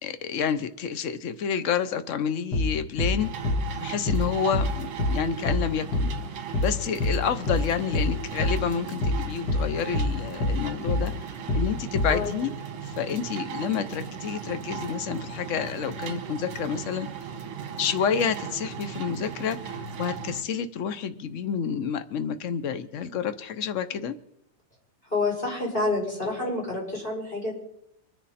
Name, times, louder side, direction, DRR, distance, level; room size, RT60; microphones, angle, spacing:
voice 1, 0.0-3.3 3.8-6.1 6.6-11.1 11.5-12.5 12.8-17.1 17.8-24.1, left 7 dB, 75° left, 10 dB, 0.7 m, -29 dB
sound 1, 2.5-2.7 3.0-3.2 3.4-3.6 4.1-4.3 4.5-4.7 5.0-5.2 5.5-5.7 5.9-6.1 6.5-6.7 7.0-7.2 7.5-7.7 7.9-8.1 8.4-8.6 9.0-9.2 9.5-9.7 9.9-10.1 10.4-10.6 10.9-11.1 11.5-11.7 12.0-12.2, left 1 dB, 50° left, 2.2 m, -25 dB
sound 2, 3.2-20.4, right 7 dB, 70° right, 2.0 m, -37 dB
voice 2, 25.0-27.5, left 2 dB, 20° left, -3 dB, 5.5 m, -28 dB
24.0 x 10.5 x 4.3 m, 0.77 s
omnidirectional pair, 2.4 m